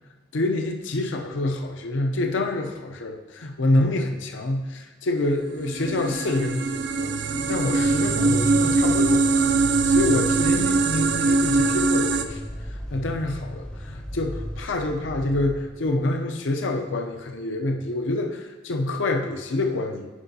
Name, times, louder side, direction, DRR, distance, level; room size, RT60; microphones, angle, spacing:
voice 1, 0.3-12.4 12.7-20.1, left 2 dB, 80° left, 3 dB, 0.6 m, -27 dB
sound 1, 5.4-12.2, right 3 dB, 65° right, 0.4 m, -22 dB
sound 2, 7.7-16.0, equal, 5° left, 0.5 m, -37 dB
9.7 x 5.3 x 2.7 m, 1.2 s
head